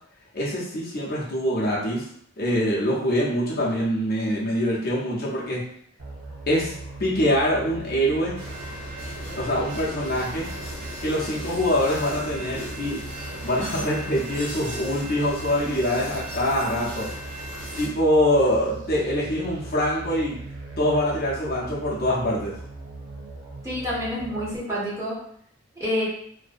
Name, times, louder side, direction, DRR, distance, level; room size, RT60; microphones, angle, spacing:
voice 1, 0.3-2.1 2.4-5.6 6.5-6.7 7.0-8.3 9.3-10.5 11.0-13.0 13.4-17.1 17.8-20.4 20.8-22.6, equal, 45° left, -5 dB, 0.6 m, -24 dB
sound 1, 6.0-24.6, right 2 dB, 50° right, 0.5 m, -39 dB
sound 2, 8.4-17.9, equal, 65° right, 1.0 m, -37 dB
voice 2, 23.6-25.2 25.8-26.0, left 1 dB, 15° right, -7 dB, 0.8 m, -28 dB
2.5 x 2.1 x 2.4 m, 0.67 s
head